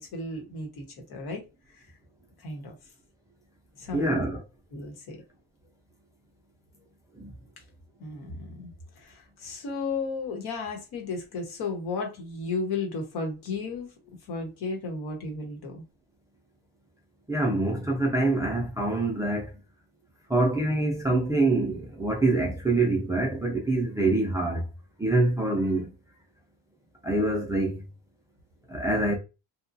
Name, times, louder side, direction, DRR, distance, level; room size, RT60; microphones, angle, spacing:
voice 1, 0.0-1.4 1.7-1.9 2.4-2.8 3.8-4.2 4.7-5.2 8.0-8.7 9.0-13.9 14.3-15.8, left 3 dB, 65° left, 1.2 m, -34 dB
voice 2, 3.9-4.4 7.1-7.3 17.3-19.5 20.3-24.7 25.0-25.9 27.0-27.8 28.7-29.1, right 2 dB, 10° right, 0.3 m, -25 dB
2.9 x 2.3 x 2.5 m
cardioid pair, 150°, 41 cm